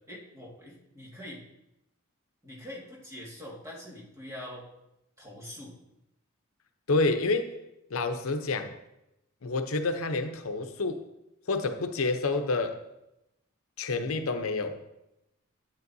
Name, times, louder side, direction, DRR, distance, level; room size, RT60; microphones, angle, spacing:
voice 1, 0.1-1.4 2.4-4.6 5.2-5.8, left 1 dB, 15° right, -4 dB, 1.9 m, -44 dB
voice 2, 6.9-7.5 7.9-8.7 9.4-11.0 11.5-12.8 13.8-14.8, left 3 dB, 90° left, 7 dB, 0.7 m, -28 dB
10.5 x 8.9 x 2.7 m, 0.88 s
head